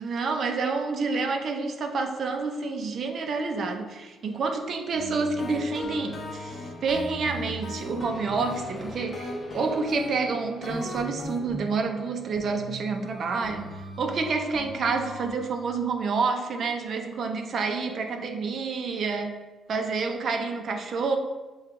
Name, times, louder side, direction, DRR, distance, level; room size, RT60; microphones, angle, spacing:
voice 1, 0.0-13.7 14.0-19.4 19.7-21.2, right 4 dB, 55° right, 5 dB, 0.5 m, -28 dB
sound 1, 4.9-15.3, right 1 dB, 15° right, 1.0 m, -41 dB
sound 2, 5.4-11.4, left 1 dB, 40° left, 0.7 m, -38 dB
5.8 x 2.3 x 3.6 m, 1.2 s
cardioid pair, 90°, 0 cm